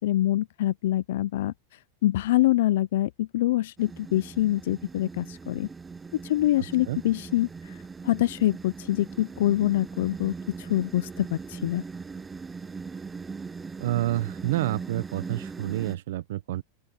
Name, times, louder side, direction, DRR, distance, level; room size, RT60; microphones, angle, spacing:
voice 1, 0.0-1.5 2.0-5.7 6.2-7.5 8.0-11.8, left 14 dB, 65° left, 0.4 m, -25 dB
sound 1, 3.8-16.0, right 4 dB, 10° right, 0.4 m, -40 dB
voice 2, 13.8-16.6, right 15 dB, 70° right, 0.9 m, -28 dB
open air
supercardioid pair, 165°, 0 cm